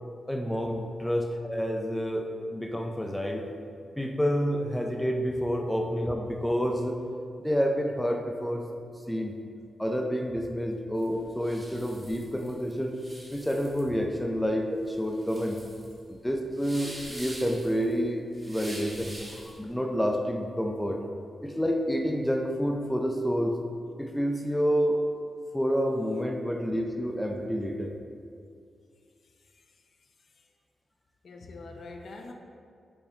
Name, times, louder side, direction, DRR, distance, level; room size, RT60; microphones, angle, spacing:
voice 1, 0.3-3.5 4.0-7.0 7.4-8.7 9.1-9.4 9.8-13.0 13.3-15.6 16.1-21.0 21.4-23.6 24.0-25.0 25.5-27.9, equal, 5° left, 2 dB, 0.4 m, -29 dB
sound 1, 11.0-19.6, right 1 dB, 15° right, 1.4 m, -45 dB
voice 2, 29.2-30.5 31.2-32.3, left 3 dB, 60° left, 3 dB, 0.6 m, -46 dB
6.8 x 5.0 x 3.1 m, 2.3 s
wide cardioid pair, 110°, 0 cm